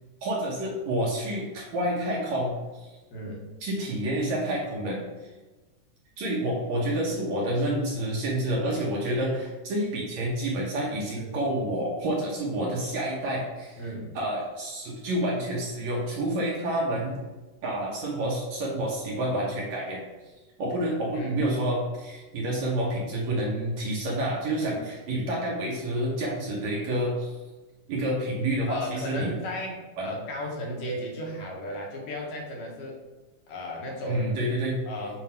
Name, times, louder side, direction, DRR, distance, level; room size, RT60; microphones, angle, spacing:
voice 1, 0.2-3.0 3.6-5.0 6.2-13.8 14.2-17.2 17.6-20.0 20.6-27.4 27.9-29.3 30.0-30.2 34.1-34.8, right 1 dB, 65° right, -3 dB, 1.9 m, -28 dB
voice 2, 3.1-3.5 11.2-11.4 13.8-14.2 21.1-21.4 24.6-24.8 28.7-33.0 33.5-34.3 34.9-35.2, equal, 75° left, -1 dB, 2.7 m, -35 dB
7.5 x 2.6 x 5.7 m, 1.2 s
omnidirectional pair, 4.0 m